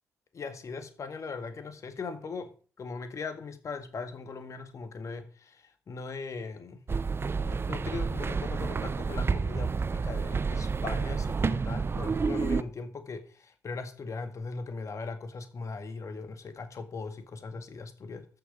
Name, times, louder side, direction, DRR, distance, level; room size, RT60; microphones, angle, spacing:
voice 1, 0.3-6.8 7.4-18.3, left 4 dB, 50° left, 1.9 m, -39 dB
sound 1, 6.9-12.6, right 5 dB, 35° right, 0.7 m, -30 dB
13.5 x 6.8 x 5.0 m
hypercardioid pair, 50°, 7 cm